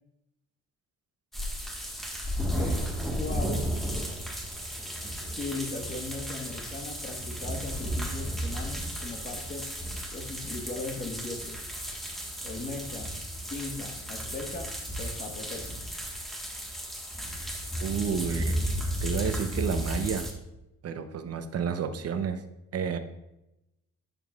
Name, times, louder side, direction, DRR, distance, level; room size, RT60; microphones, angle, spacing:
sound 1, 1.3-20.3, equal, ahead, 1.4 m, -34 dB
voice 1, 2.6-3.7 5.3-9.7 10.1-11.6 12.4-13.1 13.5-14.7 15.0-15.6, left 3 dB, 30° left, 4 dB, 1.4 m, -38 dB
voice 2, 17.8-18.6 19.0-20.3 20.8-22.4 22.7-23.0, right 6 dB, 55° right, 9 dB, 0.8 m, -30 dB
10.5 x 7.0 x 2.4 m, 0.89 s
cardioid pair, 90°, 30 cm